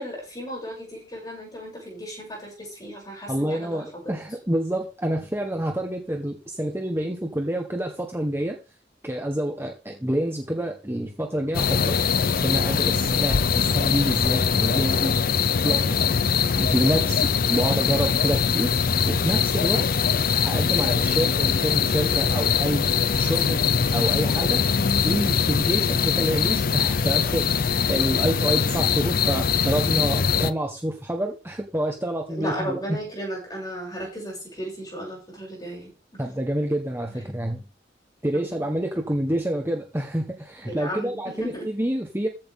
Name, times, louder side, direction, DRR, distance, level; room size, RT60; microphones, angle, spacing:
voice 1, 0.0-4.1 32.3-36.2 37.1-37.2 38.3-38.6 40.6-41.7, equal, 20° left, -2 dB, 7.6 m, -35 dB
voice 2, 3.3-8.6 9.0-12.0 12.4-15.2 15.6-16.0 16.6-18.7 19.1-19.9 20.3-22.9 23.2-23.6 23.9-24.6 25.0-33.0 36.2-37.6 38.2-42.3, right 1 dB, 15° right, 2 dB, 1.3 m, -27 dB
sound 1, 11.5-30.5, left 6 dB, 50° left, 0.5 m, -22 dB
15.0 x 7.9 x 3.8 m, 0.32 s
head